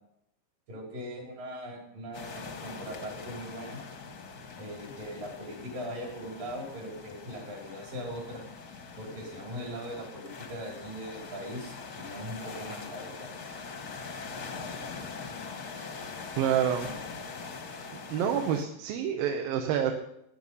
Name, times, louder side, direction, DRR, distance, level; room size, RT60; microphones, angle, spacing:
voice 1, 0.7-3.8 4.6-8.4 9.0-13.3, equal, 70° right, -1 dB, 5.9 m, -40 dB
sound 1, 2.1-18.7, left 4 dB, 60° left, 0.9 m, -43 dB
voice 2, 16.4-16.9 17.9-19.9, right 9 dB, 85° right, 3 dB, 2.9 m, -28 dB
18.0 x 10.0 x 5.5 m, 0.77 s
omnidirectional pair, 4.0 m